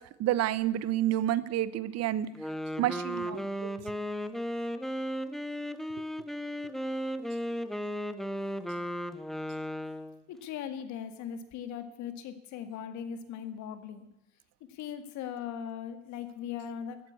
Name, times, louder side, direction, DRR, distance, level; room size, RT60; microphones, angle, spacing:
voice 1, 0.2-2.3 2.8-3.7, right 13 dB, 50° right, 17 dB, 0.8 m, -29 dB
Wind instrument woodwind instrument, 2.2-10.2, equal, ahead, 0.7 m, -35 dB
voice 2, 10.3-14.1 14.7-17.0, left 8 dB, 55° left, 10 dB, 2.0 m, -39 dB
14.5 x 9.2 x 8.4 m, 0.85 s
supercardioid pair, 115°, 33 cm